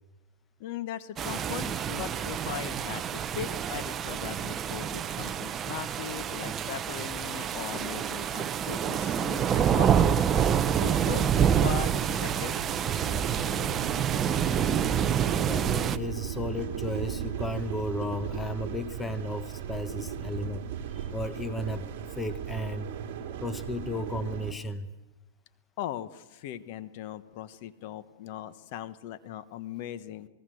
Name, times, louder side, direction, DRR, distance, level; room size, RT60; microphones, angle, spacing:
voice 1, 0.6-10.1 10.8-11.9 12.2-12.5 25.8-30.3, left 11 dB, 45° left, 13 dB, 1.2 m, -39 dB
sound 1, 1.2-16.0, right 8 dB, 20° right, 0.7 m, -27 dB
sound 2, 10.7-24.5, right 9 dB, 50° right, 3.1 m, -37 dB
voice 2, 15.5-20.6 20.9-22.9 23.4-24.9, left 1 dB, 10° left, 11 dB, 1.0 m, -34 dB
28.0 x 19.0 x 7.9 m, 1.1 s
supercardioid pair, 150°, 0 cm